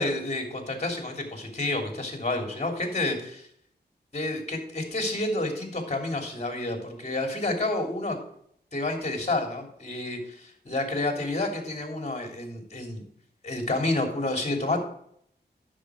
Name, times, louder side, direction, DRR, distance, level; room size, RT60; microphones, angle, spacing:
voice 1, 0.0-3.5 4.1-8.2 8.7-13.0 13.4-14.8, left 2 dB, 40° left, 3 dB, 3.2 m, -29 dB
9.9 x 7.5 x 5.0 m, 0.68 s
wide cardioid pair, 65°, 18 cm